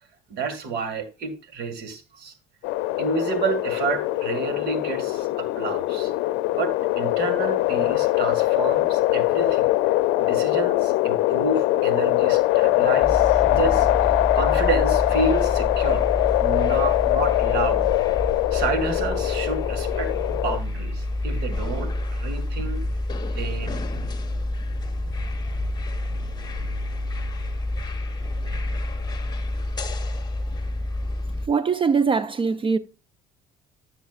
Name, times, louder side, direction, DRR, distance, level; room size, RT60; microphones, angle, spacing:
voice 1, 0.3-2.3 3.0-6.1 6.5-16.1 16.4-17.9 18.5-22.9 23.2-24.0, right 4 dB, 65° right, 2.1 m, -30 dB
sound 1, 2.6-20.6, left 17 dB, 75° left, 0.5 m, -22 dB
sound 2, 13.0-31.5, left 2 dB, 20° left, 1.2 m, -28 dB
voice 2, 31.5-32.8, right 5 dB, 30° right, 0.5 m, -22 dB
12.0 x 7.2 x 2.4 m
supercardioid pair, 95°, 18 cm